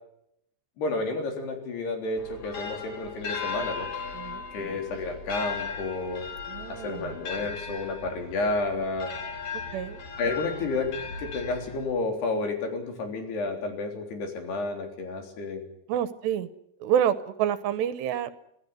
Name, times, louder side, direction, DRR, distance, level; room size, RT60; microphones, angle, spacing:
voice 1, 0.8-3.9 4.5-6.3 6.6-9.1 10.2-10.9 11.2-15.6, left 3 dB, 65° left, 4 dB, 5.6 m, -31 dB
sound 1, 2.2-12.1, left 5 dB, 40° left, 2.9 m, -37 dB
voice 2, 6.5-7.1 9.7-10.0 15.9-16.5 16.8-18.3, right 9 dB, 75° right, 14 dB, 3.1 m, -28 dB
25.5 x 16.0 x 9.6 m, 0.79 s
omnidirectional pair, 5.1 m